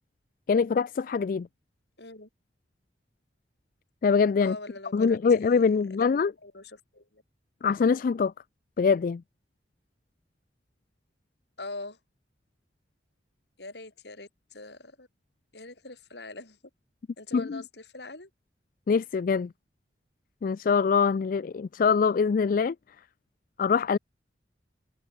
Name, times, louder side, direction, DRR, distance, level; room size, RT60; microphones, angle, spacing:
voice 1, 0.5-1.5 4.0-4.6 4.9-6.3 7.6-8.3 8.8-9.2 17.3-17.6 18.9-19.5 20.4-22.7 23.6-24.0, left 5 dB, 50° left, 0.3 m, -23 dB
voice 2, 2.0-2.3 4.4-6.1 6.4-7.2 11.6-12.0 13.6-15.1 15.5-16.6 17.2-18.3, left 2 dB, 65° left, 4.4 m, -43 dB
head